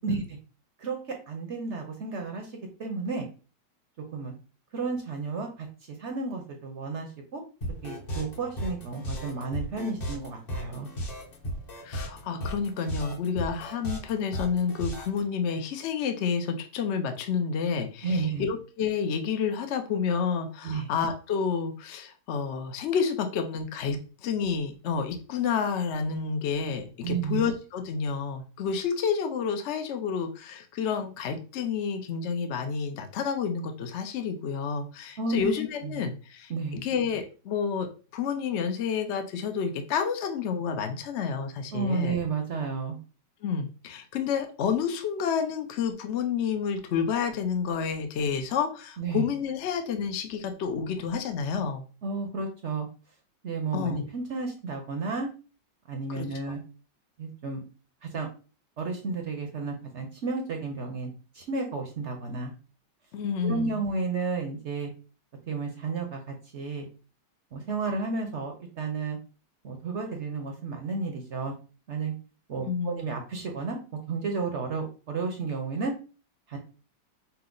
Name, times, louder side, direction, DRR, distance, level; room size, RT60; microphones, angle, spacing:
voice 1, 0.0-0.4 0.8-1.0 1.3-2.5 2.8-3.3 4.1-4.3 4.7-5.7 6.0-7.4 7.8-10.9 18.0-18.5 20.6-20.9 27.0-27.4 35.2-35.5 35.8-36.0 36.5-36.8 41.7-43.0 49.0-49.3 52.0-52.9 53.4-55.3 55.9-56.6 57.2-57.6 58.0-58.3 58.8-62.5 63.4-64.9 65.5-66.9 67.5-69.2 69.6-71.5 71.9-72.1 72.5-73.8 74.1-75.9 76.5-76.6, right 4 dB, 55° right, 3 dB, 0.8 m, -32 dB
sound 1, 7.6-15.2, equal, 40° left, 1.0 m, -35 dB
voice 2, 11.8-36.5 36.8-37.9 38.1-42.2 43.4-51.8 53.7-54.1 56.1-56.3 63.1-63.8 72.6-73.0, left 6 dB, 70° left, 6 dB, 0.6 m, -29 dB
5.6 x 2.1 x 3.8 m, 0.36 s
omnidirectional pair, 1.9 m